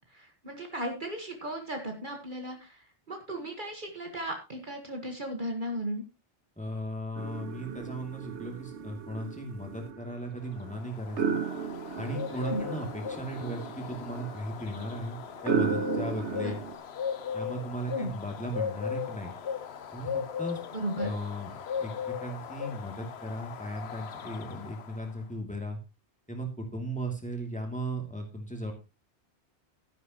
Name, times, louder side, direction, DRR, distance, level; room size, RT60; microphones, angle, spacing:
voice 1, 0.1-6.0 12.3-12.6 16.3-16.5 17.9-18.1 20.7-21.1, right 1 dB, 45° right, 3 dB, 1.8 m, -36 dB
voice 2, 6.6-11.4 11.9-16.6 17.3-19.3 19.9-20.6 21.0-21.5 21.8-25.8 26.3-28.7, right 1 dB, 5° left, 2 dB, 2.7 m, -36 dB
sound 1, 7.2-16.8, right 6 dB, 80° right, 1.5 m, -35 dB
Bird, 10.5-25.2, left 7 dB, 70° left, 1.1 m, -38 dB
12.5 x 10.5 x 3.0 m, 0.27 s
omnidirectional pair, 1.2 m